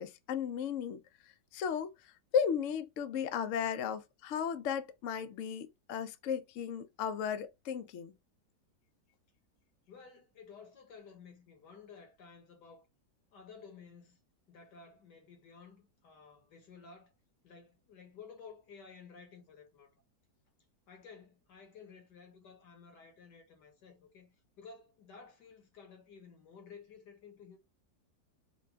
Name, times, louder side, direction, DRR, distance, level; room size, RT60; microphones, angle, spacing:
voice 1, 0.0-8.1, left 7 dB, 65° left, 0.8 m, -35 dB
voice 2, 9.9-12.9 13.3-14.2 14.5-17.1 17.4-20.0 20.9-27.6, left 5 dB, 80° left, 1.8 m, -54 dB
5.0 x 2.3 x 3.4 m
omnidirectional pair, 1.8 m